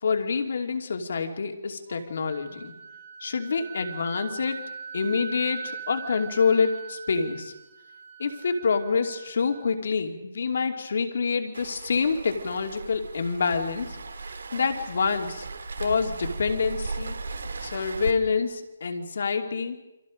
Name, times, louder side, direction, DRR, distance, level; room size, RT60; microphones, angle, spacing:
voice 1, 0.0-2.7 3.2-4.6 4.9-7.5 8.2-14.0 14.5-15.5 15.8-17.1 17.6-19.8, left 5 dB, 50° left, 5 dB, 2.7 m, -27 dB
Wind instrument woodwind instrument, 1.9-9.6, right 6 dB, 40° right, 4.5 m, -41 dB
Waves surf, 11.5-18.1, right 3 dB, 90° right, 2.7 m, -37 dB
29.0 x 25.5 x 5.2 m, 0.99 s
hypercardioid pair, 180°, 0 cm